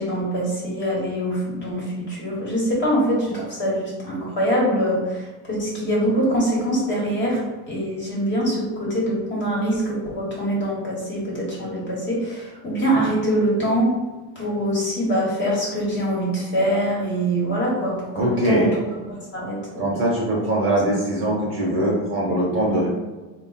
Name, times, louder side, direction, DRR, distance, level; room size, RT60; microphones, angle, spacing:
voice 1, 0.0-13.9 14.3-18.8 19.1-19.9 20.7-20.8 22.7-22.8, right 1 dB, 25° left, -5 dB, 1.3 m, -24 dB
voice 2, 18.1-18.7 19.8-22.9, right 1 dB, 30° right, -3 dB, 1.2 m, -22 dB
3.4 x 2.3 x 4.0 m, 1.2 s
supercardioid pair, 140°, 41 cm